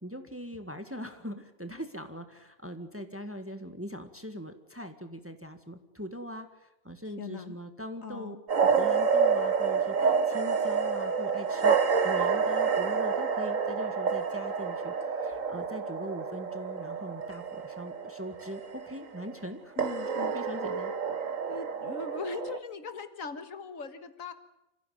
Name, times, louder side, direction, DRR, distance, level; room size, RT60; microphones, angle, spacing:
voice 1, 0.0-11.8 12.0-14.9 15.2-19.7 20.2-20.9, equal, 10° right, 7 dB, 1.6 m, -41 dB
voice 2, 7.2-7.6 8.0-8.4 19.8-20.3 21.5-24.3, left 5 dB, 65° left, 10 dB, 2.0 m, -40 dB
sound 1, 8.5-19.5 19.8-22.6, right 5 dB, 65° right, 1.8 m, -28 dB
27.0 x 15.5 x 9.4 m, 0.93 s
omnidirectional pair, 1.5 m